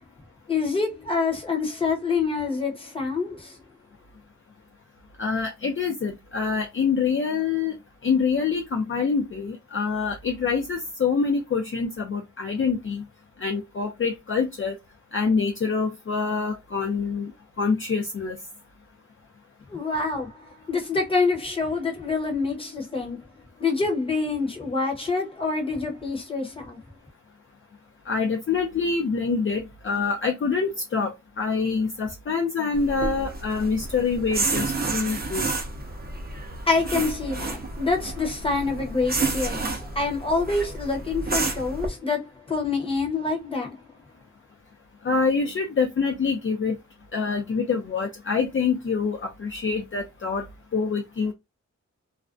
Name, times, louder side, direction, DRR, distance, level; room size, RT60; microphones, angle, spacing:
voice 1, 0.5-3.6 19.7-23.2 23.6-26.8 36.7-43.8, left 4 dB, 20° left, 0.7 m, -26 dB
voice 2, 5.2-7.7 8.0-13.0 13.4-14.8 15.1-17.3 17.6-18.4 28.1-35.5 45.0-46.8 47.1-50.5 50.7-51.3, left 5 dB, 45° left, 0.4 m, -26 dB
sound 1, 32.7-41.9, right 3 dB, 30° right, 0.6 m, -30 dB
2.4 x 2.1 x 2.4 m
wide cardioid pair, 135°, 30 cm